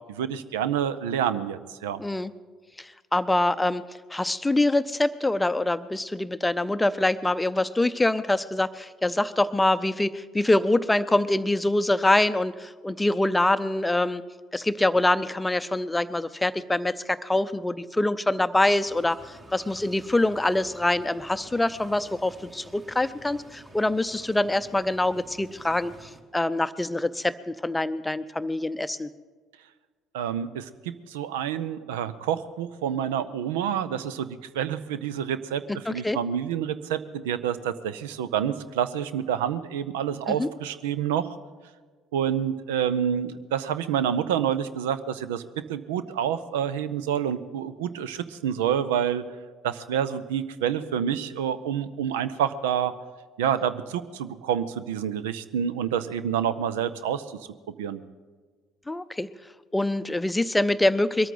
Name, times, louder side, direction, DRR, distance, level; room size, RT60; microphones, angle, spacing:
voice 1, 0.1-2.0 30.1-41.4 42.1-49.2 49.6-52.9 53.4-57.4 57.7-58.0, right 9 dB, 70° right, 14 dB, 0.5 m, -28 dB
voice 2, 2.0-2.3 2.8-3.8 4.1-14.2 14.5-29.1 35.7-36.2 40.3-40.5 58.9-59.3 59.7-61.3, left 2 dB, 10° left, 13 dB, 0.6 m, -25 dB
sound 1, 18.8-26.2, right 2 dB, 30° right, 2.1 m, -50 dB
22.0 x 13.5 x 3.9 m, 1.5 s
figure-of-eight pair, 55°, 0 cm